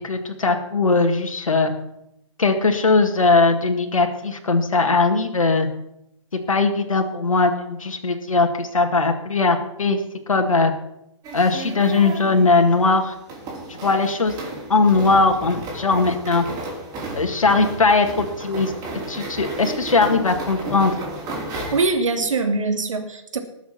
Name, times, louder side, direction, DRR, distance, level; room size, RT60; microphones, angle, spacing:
voice 1, 0.0-1.7 2.4-5.7 6.3-10.7 11.3-13.1 13.7-14.3 14.7-16.4 17.2-18.7 19.1-20.9, left 3 dB, 80° left, 4 dB, 1.9 m, -19 dB
sound 1, 11.2-21.8, right 2 dB, 20° right, 5.1 m, -33 dB
voice 2, 21.7-23.4, right 3 dB, 70° right, 5 dB, 2.7 m, -22 dB
19.5 x 7.2 x 6.0 m, 0.83 s
figure-of-eight pair, 130°, 17 cm